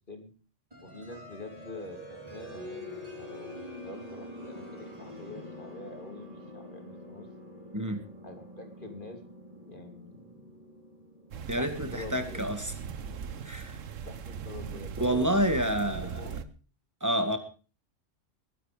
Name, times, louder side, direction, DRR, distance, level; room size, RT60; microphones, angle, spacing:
sound 1, 0.7-13.2, left 1 dB, 30° right, 3.6 m, -46 dB
voice 1, 0.8-7.3 8.2-9.2 9.6-10.5 11.6-12.4 14.0-16.5, left 2 dB, 40° left, 5 dB, 3.1 m, -45 dB
sound 2, 11.3-16.4, right 6 dB, 90° right, 1.4 m, -39 dB
voice 2, 11.5-12.7 13.4-13.8 15.0-16.2 17.0-17.4, equal, 15° right, 8 dB, 2.0 m, -28 dB
21.0 x 9.6 x 5.1 m, 0.36 s
omnidirectional pair, 1.3 m